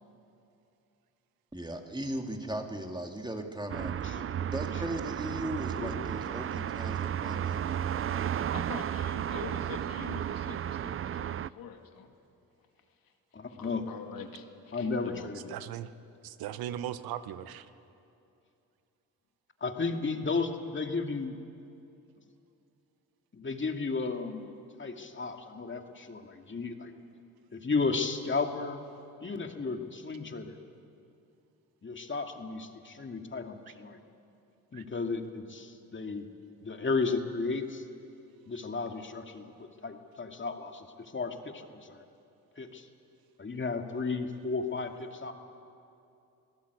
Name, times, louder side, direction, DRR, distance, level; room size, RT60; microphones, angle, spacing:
voice 1, 1.5-8.3, right 1 dB, 10° right, 3 dB, 2.6 m, -38 dB
sound 1, 3.7-11.5, right 10 dB, 40° right, 0.5 m, -33 dB
voice 2, 5.8-6.1 13.3-13.8 14.7-15.5 19.6-21.4 23.3-24.5 24.8-26.9 27.5-28.8 29.2-30.6 31.8-34.0 34.7-36.3 36.6-37.8 38.5-42.0 42.6-42.9 43.4-45.3, left 4 dB, 35° left, 5 dB, 2.3 m, -34 dB
voice 3, 8.5-12.1 13.0-13.1 13.5-15.3, left 7 dB, 70° left, 5 dB, 2.2 m, -45 dB
voice 4, 15.5-15.9 16.2-17.7 34.7-34.8, right 11 dB, 80° right, 13 dB, 1.0 m, -38 dB
25.5 x 17.5 x 8.2 m, 2.7 s
supercardioid pair, 60°, 35 cm